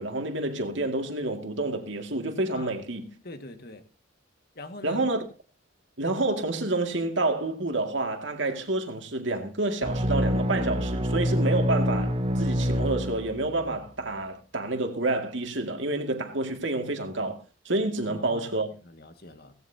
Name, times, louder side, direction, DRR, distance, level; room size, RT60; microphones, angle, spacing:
voice 1, 0.0-3.1 4.8-5.2 6.0-18.7, right 2 dB, 70° right, 2.3 m, -29 dB
voice 2, 3.2-3.8 4.6-5.0 18.0-18.5 18.8-19.5, left 2 dB, 50° left, 1.9 m, -43 dB
sound 1, 9.8-13.7, equal, 30° right, 1.1 m, -26 dB
17.5 x 17.0 x 2.9 m
head